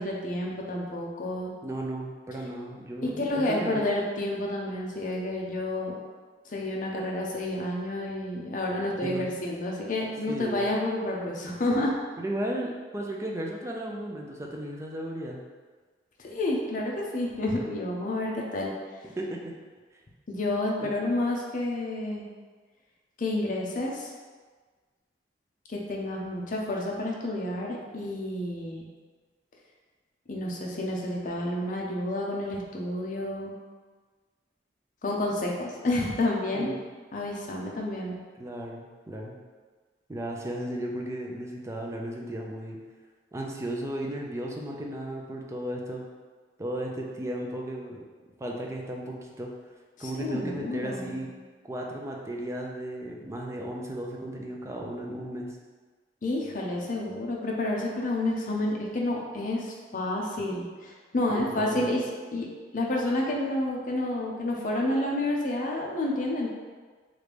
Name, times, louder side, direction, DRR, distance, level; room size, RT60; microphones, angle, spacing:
voice 1, 0.0-1.5 3.0-5.9 6.5-11.9 16.2-18.7 20.3-22.3 23.2-24.1 25.7-28.9 30.3-33.5 35.0-36.7 37.1-38.2 50.0-51.2 56.2-62.0 62.3-62.5 62.7-66.5, left 1 dB, 50° left, -2 dB, 0.6 m, -30 dB
voice 2, 1.6-3.9 9.0-9.2 10.3-10.7 12.2-15.4 19.2-19.5 20.8-20.9 36.5-36.8 38.4-39.4 40.1-42.8 43.3-46.0 46.6-48.1 48.4-49.5 50.0-51.3 51.6-55.6 61.3-61.9, right 1 dB, 15° right, -1 dB, 0.4 m, -35 dB
3.2 x 2.5 x 3.3 m, 1.4 s
head